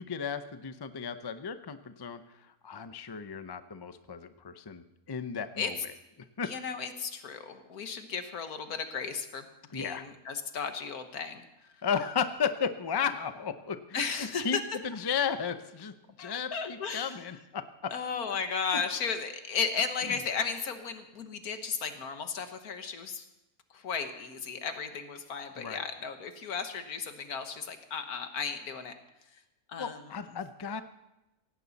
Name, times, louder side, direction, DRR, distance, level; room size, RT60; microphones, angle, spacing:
voice 1, 0.0-2.2 2.6-5.8 6.4-6.5 9.7-10.0 11.8-14.6 14.8-17.9 25.6-25.8 29.8-30.8, left 6 dB, 30° left, 10 dB, 0.4 m, -34 dB
voice 2, 6.4-9.5 9.7-11.4 13.9-14.6 16.2-17.2 17.9-23.3 23.7-28.9 29.7-30.0 30.3-30.4, left 5 dB, 80° left, 7 dB, 1.8 m, -35 dB
17.0 x 16.5 x 4.1 m, 0.96 s
omnidirectional pair, 1.6 m